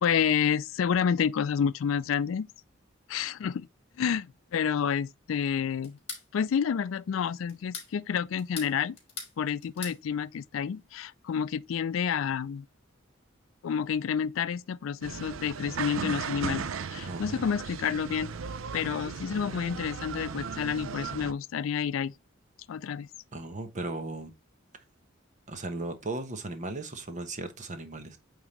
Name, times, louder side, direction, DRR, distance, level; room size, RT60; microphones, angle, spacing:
voice 1, 0.0-2.5 3.1-3.7 4.0-6.0 6.3-9.0 9.4-12.7 13.6-18.3 18.7-22.1 22.7-23.1, left 7 dB, 75° left, 0.4 m, -29 dB
sound 1, 5.8-6.3 7.5-7.9 8.4-9.3 9.6-10.0, left 5 dB, 30° left, 2.8 m, -40 dB
sound 2, 15.0-21.3, right 5 dB, 80° right, 0.6 m, -36 dB
voice 2, 17.1-17.5 23.3-24.3 24.7-24.8 25.5-28.2, right 2 dB, 40° right, 1.0 m, -37 dB
8.6 x 3.6 x 3.0 m
head